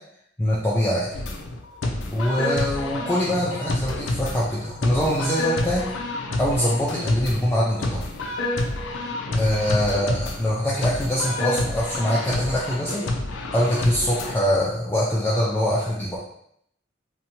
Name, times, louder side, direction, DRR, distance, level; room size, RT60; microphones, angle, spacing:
voice 1, 0.4-1.1 2.1-5.8 6.4-8.1 9.3-13.0 13.5-16.2, equal, 10° left, -7 dB, 0.4 m, -23 dB
sound 1, 1.1-14.3, left 2 dB, 85° left, 0.4 m, -29 dB
2.7 x 2.2 x 2.7 m, 0.69 s
head